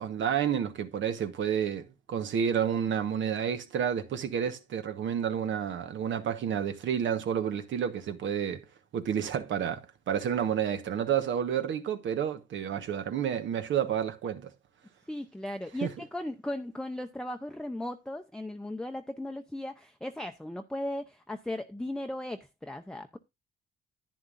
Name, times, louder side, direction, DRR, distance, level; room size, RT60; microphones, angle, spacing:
voice 1, 0.0-8.6 8.9-9.8 10.1-14.5 15.8-15.9, right 8 dB, 70° right, 1.3 m, -30 dB
voice 2, 15.1-23.2, left 1 dB, 5° left, 0.7 m, -37 dB
10.5 x 9.5 x 2.5 m
cardioid pair, 90°, 20 cm